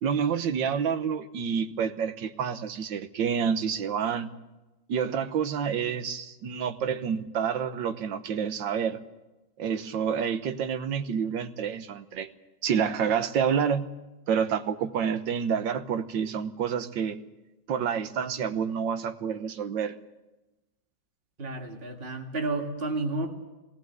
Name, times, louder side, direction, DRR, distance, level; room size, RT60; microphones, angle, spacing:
voice 1, 0.0-4.3 4.9-9.0 9.6-12.3 12.6-13.9 14.3-17.2 17.7-19.9, right 7 dB, 85° right, 10 dB, 1.7 m, -28 dB
voice 2, 21.4-23.3, right 2 dB, 35° right, 2 dB, 2.1 m, -31 dB
20.0 x 17.5 x 8.1 m, 1.1 s
omnidirectional pair, 1.9 m